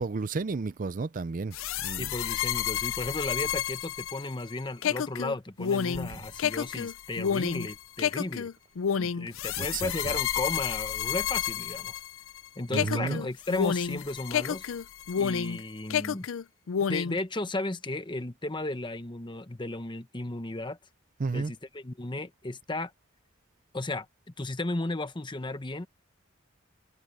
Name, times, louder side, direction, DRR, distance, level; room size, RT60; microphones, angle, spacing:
voice 1, 0.0-1.6 1.8-2.1 6.1-6.2 9.6-9.9 12.7-13.3 21.2-21.5, right 4 dB, 40° right, 0.5 m, -32 dB
sound 1, 1.5-12.4 12.7-15.6 15.9-17.2, left 8 dB, 75° left, 0.5 m, -30 dB
voice 2, 2.0-8.5 8.9-11.9 12.6-14.6 15.2-16.3 16.9-20.8 21.3-22.9 23.7-24.1 24.4-25.9, left 2 dB, 25° left, 1.0 m, -34 dB
head